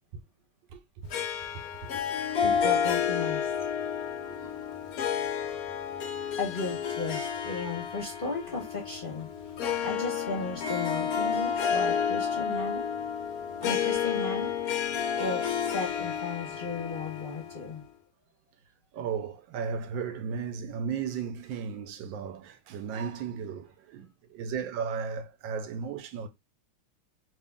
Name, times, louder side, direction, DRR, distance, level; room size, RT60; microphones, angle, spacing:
voice 1, 0.7-1.2 1.5-2.6 4.2-5.0 5.4-6.1 18.9-26.3, right 6 dB, 75° right, 1.1 m, -36 dB
Harp, 1.1-17.9, left 7 dB, 70° left, 0.9 m, -31 dB
voice 2, 2.4-3.5 6.4-9.3 9.8-12.9 13.6-14.5 15.1-17.8, left 3 dB, 40° left, 0.8 m, -35 dB
3.0 x 2.9 x 3.4 m
omnidirectional pair, 2.3 m